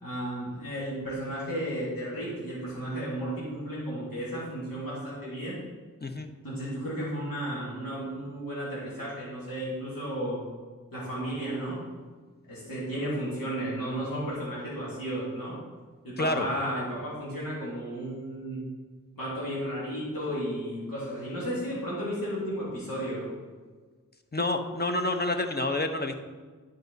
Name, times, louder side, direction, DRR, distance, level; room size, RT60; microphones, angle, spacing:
voice 1, 0.0-5.6 6.4-10.4 10.9-11.8 12.5-15.5 16.0-18.7 19.2-23.3, equal, 85° left, -8 dB, 2.6 m, -33 dB
voice 2, 16.2-16.5 24.3-26.1, left 2 dB, 30° left, 6 dB, 0.8 m, -28 dB
10.5 x 5.2 x 4.0 m, 1.5 s
wide cardioid pair, 50°, 34 cm